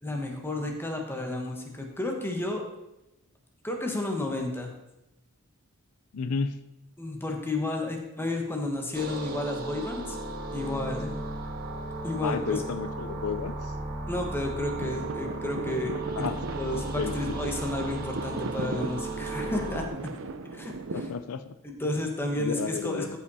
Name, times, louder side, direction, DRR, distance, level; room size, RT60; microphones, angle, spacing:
voice 1, 0.0-2.6 3.6-4.7 7.0-10.2 10.5-11.2 12.0-12.6 14.1-16.3 16.5-20.1 20.5-21.0 21.6-23.2, left 2 dB, 10° left, 1 dB, 1.3 m, -32 dB
voice 2, 6.1-6.5 12.2-13.7 16.2-16.4 16.7-17.4 20.9-21.5 22.4-23.2, left 5 dB, 75° left, 11 dB, 0.5 m, -32 dB
sound 1, 8.9-19.9, right 2 dB, 45° right, 1.0 m, -35 dB
sound 2, 14.8-21.1, right 3 dB, 60° right, 0.6 m, -37 dB
13.5 x 5.6 x 4.2 m, 0.91 s
head